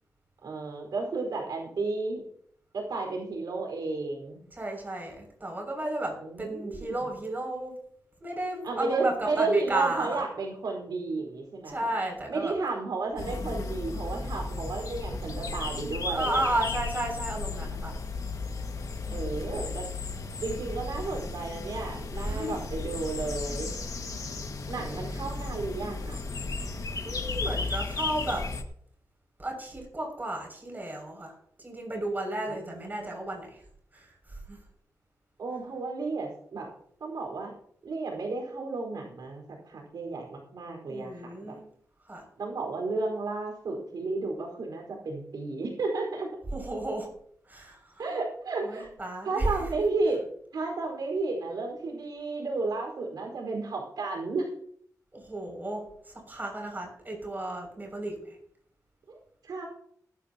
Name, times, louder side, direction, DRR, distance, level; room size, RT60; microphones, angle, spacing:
voice 1, 0.4-2.2 2.7-4.4 6.2-7.0 8.6-11.9 12.3-16.6 19.1-19.9 20.4-23.7 24.7-26.2 32.5-33.1 35.4-36.7 37.0-37.5 37.8-41.6 42.4-46.3 48.0-48.9 49.2-50.2 50.5-54.5 59.1-59.2 59.4-59.6, right 3 dB, 85° right, 0 dB, 4.6 m, -32 dB
voice 2, 4.5-7.7 8.2-10.2 11.7-12.6 16.1-17.9 19.0-19.2 22.2-22.6 24.8-25.0 27.0-28.4 29.4-31.3 31.6-33.6 33.9-34.6 40.9-41.6 42.1-42.2 46.5-47.1 47.5-48.0 48.6-49.5 55.1-58.4, right 1 dB, 25° right, 1 dB, 6.5 m, -33 dB
sound 1, 13.2-28.6, left 3 dB, 60° left, 1.8 m, -34 dB
19.5 x 12.5 x 2.9 m, 0.64 s
wide cardioid pair, 100°, 7 cm